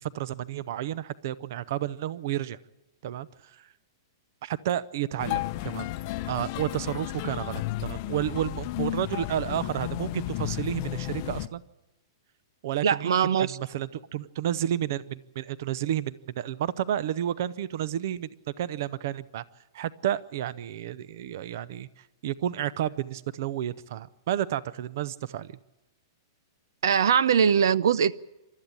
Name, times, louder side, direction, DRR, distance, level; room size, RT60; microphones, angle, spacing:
voice 1, 0.0-2.6 3.0-3.7 4.4-5.9 6.3-11.6 12.6-18.3 18.6-19.4 19.7-25.6, right 11 dB, 45° right, 18 dB, 0.7 m, -31 dB
sound 1, 5.2-11.5, left 16 dB, 30° left, 0.7 m, -33 dB
voice 2, 12.8-13.6 26.8-28.1, right 7 dB, 85° right, 19 dB, 0.7 m, -21 dB
28.0 x 13.5 x 8.8 m, 1.0 s
supercardioid pair, 175°, 2 cm